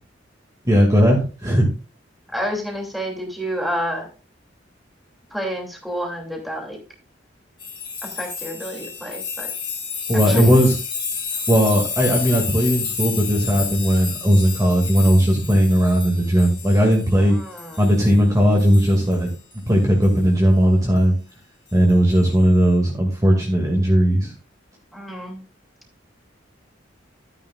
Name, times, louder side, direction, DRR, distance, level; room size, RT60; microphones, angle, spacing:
voice 1, 0.6-1.7 10.1-10.8 11.5-17.4 17.8-19.3 19.7-21.2 21.7-24.3, equal, 20° right, 0 dB, 2.2 m, -17 dB
voice 2, 2.3-4.1 5.3-6.8 8.0-9.5 10.1-10.5 17.2-17.9 24.9-25.4, equal, ahead, 0 dB, 2.7 m, -29 dB
sound 1, 7.6-18.3 18.6-19.6 20.0-20.2 21.9-22.1, left 6 dB, 25° left, 2.4 m, -30 dB
12.5 x 9.6 x 2.4 m, 0.34 s
head